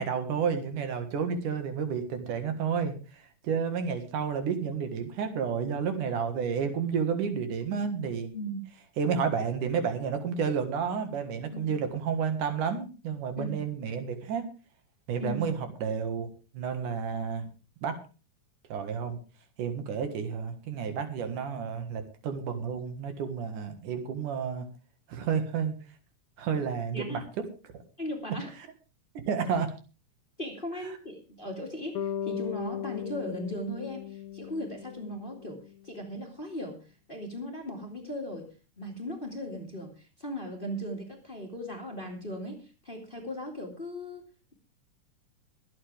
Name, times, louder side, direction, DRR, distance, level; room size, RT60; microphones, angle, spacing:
voice 1, 0.0-3.0 3.4-8.3 9.0-14.5 15.1-15.5 15.8-16.3 16.5-17.5 17.8-18.0 18.7-19.2 19.6-24.7 25.1-25.7 26.4-27.2 29.1-29.7, right 6 dB, 80° right, 7 dB, 3.2 m, -31 dB
voice 2, 8.3-8.6 11.5-11.7 13.4-13.6 15.2-15.5 26.9-27.2 28.0-28.5 30.4-35.6 35.8-36.8 37.1-38.5 38.8-44.5, equal, 20° left, 2 dB, 2.0 m, -37 dB
Bass guitar, 31.9-36.1, left 9 dB, 70° left, 2.2 m, -37 dB
23.0 x 8.6 x 3.4 m, 0.33 s
omnidirectional pair, 3.6 m